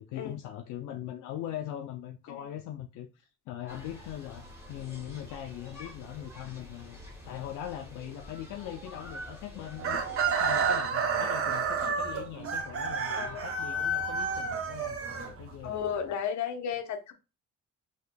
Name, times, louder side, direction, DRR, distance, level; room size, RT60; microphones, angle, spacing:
voice 1, 0.0-7.0 7.2-10.0 10.3-15.8, left 11 dB, 85° left, 0.5 m, -41 dB
sound 1, 3.7-10.8, left 1 dB, 10° right, 1.4 m, -47 dB
Chicken rooster, 9.8-15.8, right 4 dB, 45° right, 0.8 m, -30 dB
voice 2, 15.6-17.1, left 8 dB, 70° left, 0.8 m, -33 dB
4.2 x 2.8 x 2.2 m
cardioid pair, 90°, 30 cm